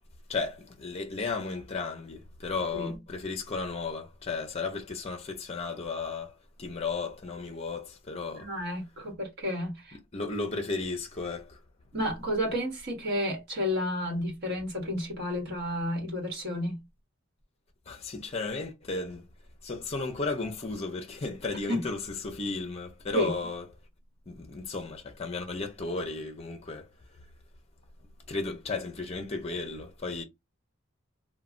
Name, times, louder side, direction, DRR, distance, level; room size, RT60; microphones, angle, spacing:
voice 1, 0.3-8.5 10.1-11.6 17.9-19.2 19.6-23.6 24.3-26.9 28.3-30.2, left 3 dB, 30° left, 0.5 m, -34 dB
voice 2, 8.4-10.0 11.9-16.8 21.7-21.9 23.1-23.4, equal, 50° right, 1.2 m, -31 dB
3.0 x 2.1 x 2.5 m
head